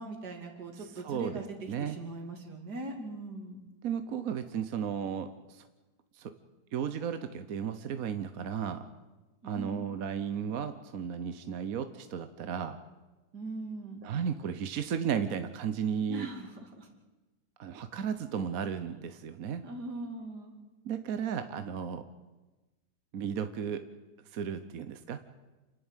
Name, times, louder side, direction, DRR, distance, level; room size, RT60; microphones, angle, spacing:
voice 1, 0.0-3.6 9.4-9.9 13.3-14.1 16.1-16.9 19.6-20.5, right 2 dB, 80° right, 3 dB, 3.3 m, -41 dB
voice 2, 1.0-1.4 1.7-2.0 3.8-5.7 6.2-6.3 6.7-8.8 9.4-12.8 14.0-16.3 17.6-19.6 20.8-22.0 23.1-23.8 24.3-25.2, right 7 dB, 60° right, 9 dB, 1.3 m, -34 dB
28.5 x 11.0 x 9.0 m, 1.2 s
omnidirectional pair, 1.7 m